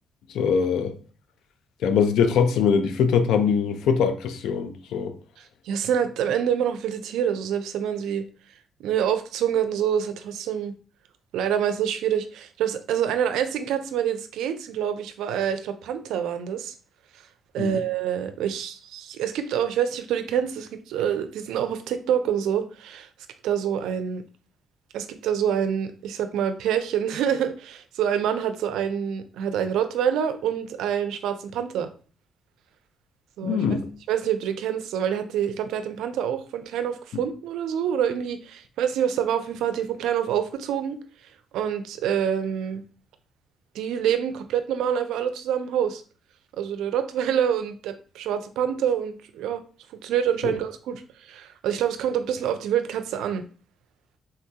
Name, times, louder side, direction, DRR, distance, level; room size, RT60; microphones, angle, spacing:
voice 1, 0.3-0.9 1.8-5.1 17.6-17.8 33.4-33.8 50.4-50.6, left 6 dB, 80° left, 0.4 m, -22 dB
voice 2, 5.7-8.2 8.8-10.7 11.3-16.7 17.5-23.1 23.4-24.2 24.9-31.9 33.4-33.6 34.1-41.0 41.5-42.8 43.7-46.0 46.6-49.6 50.0-53.4, right 9 dB, 85° right, 0.4 m, -26 dB
3.8 x 2.2 x 2.7 m
cardioid pair, 90°, 0 cm